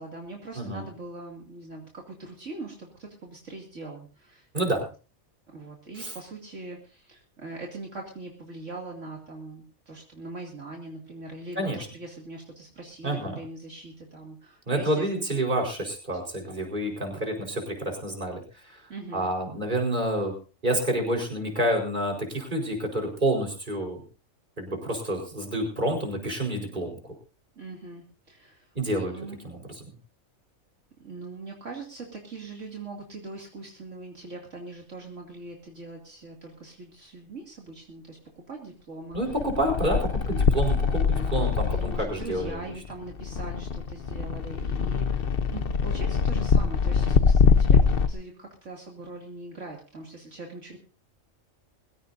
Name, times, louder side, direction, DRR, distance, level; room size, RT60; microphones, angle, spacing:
voice 1, 0.0-4.8 5.5-15.2 18.9-19.3 27.6-29.4 31.0-38.2 38.5-39.2 39.6-40.1 41.1-50.8, right 2 dB, 65° right, 0 dB, 2.9 m, -41 dB
voice 2, 11.6-11.9 13.0-13.4 14.7-18.8 19.1-20.3 20.6-24.0 24.6-27.0 28.7-29.1 29.4-29.6 39.1-42.6, right 1 dB, 35° right, 1 dB, 4.8 m, -28 dB
sound 1, 39.1-48.1, left 5 dB, 50° left, 1.0 m, -24 dB
22.5 x 16.5 x 2.7 m, 0.35 s
omnidirectional pair, 1.4 m